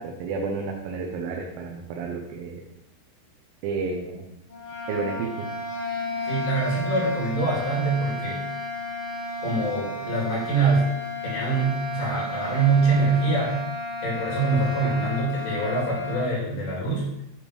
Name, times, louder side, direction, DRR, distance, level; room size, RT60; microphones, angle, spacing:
voice 1, 0.0-2.6 3.6-4.3 4.9-5.5, right 4 dB, 85° right, 0 dB, 3.5 m, -31 dB
sound 1, 4.5-16.3, left 1 dB, 45° left, 1.8 m, -33 dB
voice 2, 6.2-8.4 9.4-10.9 11.2-13.6 14.0-17.1, right 3 dB, 70° left, -6 dB, 4.8 m, -24 dB
10.5 x 3.5 x 4.7 m, 0.87 s
omnidirectional pair, 5.8 m